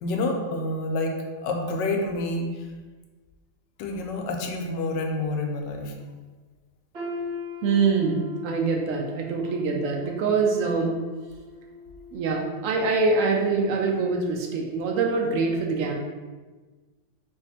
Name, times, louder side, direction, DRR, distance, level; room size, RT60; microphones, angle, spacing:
voice 1, 0.0-1.2 1.4-2.5 3.8-5.9, left 2 dB, 85° left, 2 dB, 1.3 m, -28 dB
sound 1, 6.9-12.9 13.3-13.5 14.3-14.4, left 2 dB, 50° right, 0.9 m, -41 dB
voice 2, 7.6-11.0 12.1-15.9, right 4 dB, 80° right, 1 dB, 0.7 m, -24 dB
3.5 x 2.8 x 4.1 m, 1.3 s
omnidirectional pair, 1.9 m